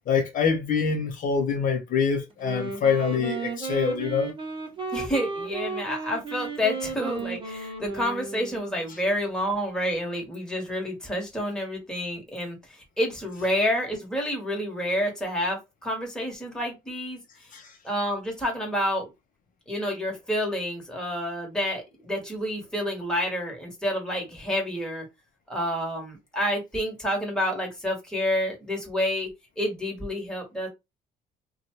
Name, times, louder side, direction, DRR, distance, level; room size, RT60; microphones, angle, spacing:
voice 1, 0.1-4.3 17.5-17.8, left 6 dB, 50° left, 0.6 m, -25 dB
Wind instrument woodwind instrument, 2.3-8.8, right 4 dB, 30° right, 0.9 m, -34 dB
voice 2, 4.9-17.2 17.8-19.1 19.7-25.1 25.5-29.3 29.6-30.7, equal, 5° left, 1.2 m, -29 dB
2.6 x 2.2 x 3.0 m
cardioid pair, 110°, 17 cm